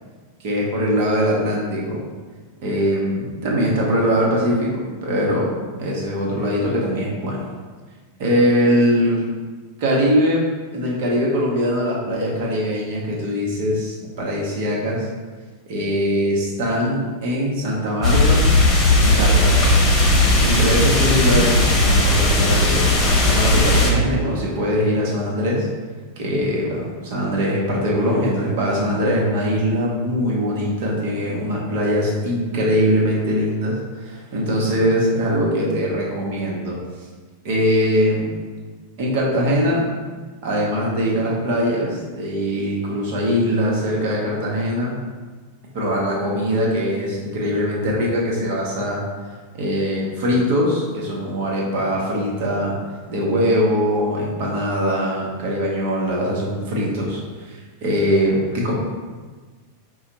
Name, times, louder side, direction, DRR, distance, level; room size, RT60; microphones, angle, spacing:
voice 1, 0.4-2.0 2.6-5.5 5.8-7.5 8.2-9.2 9.8-10.4 10.7-15.1 15.7-18.5 19.0-19.9 20.4-25.7 26.2-36.8 37.4-38.3 39.0-39.9 40.4-45.0 45.7-49.0 49.5-52.7 53.1-58.7, equal, 50° right, -3 dB, 1.2 m, -22 dB
sound 1, 18.0-23.9, left 1 dB, 30° left, 1.0 m, -16 dB
4.8 x 2.4 x 4.2 m, 1.4 s
figure-of-eight pair, 90°, 0 cm